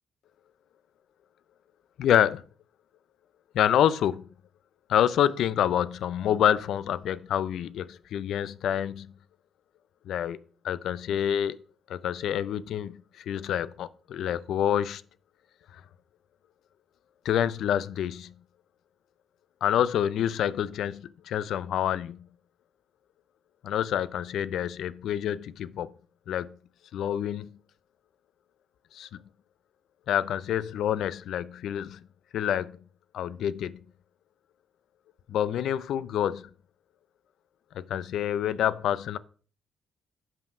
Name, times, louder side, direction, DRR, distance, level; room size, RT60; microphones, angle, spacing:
voice 1, 2.0-2.4 3.5-4.2 4.9-9.1 10.1-10.4 10.6-11.6 11.9-15.0 15.7-15.8 17.2-18.3 19.6-22.2 23.6-25.9 26.3-26.5 26.9-27.5 28.9-29.2 30.1-32.0 32.3-32.8 33.1-33.8 35.3-36.5 37.7-39.2, left 10 dB, 75° left, 0.4 m, -27 dB
5.6 x 5.2 x 5.9 m
cardioid pair, 90°, 0 cm